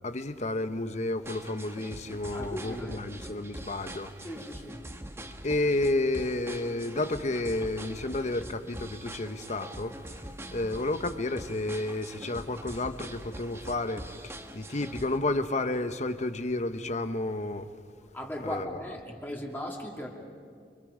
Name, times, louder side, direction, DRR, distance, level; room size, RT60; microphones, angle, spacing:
voice 1, 0.0-4.1 5.4-10.2 10.5-17.7 18.4-18.7, left 2 dB, 40° left, 1.0 m, -31 dB
sound 1, 1.2-15.2, right 1 dB, 15° right, 1.4 m, -43 dB
voice 2, 2.3-3.1 4.2-4.8 18.1-20.1, equal, 10° left, 2.5 m, -38 dB
29.5 x 25.5 x 5.1 m
head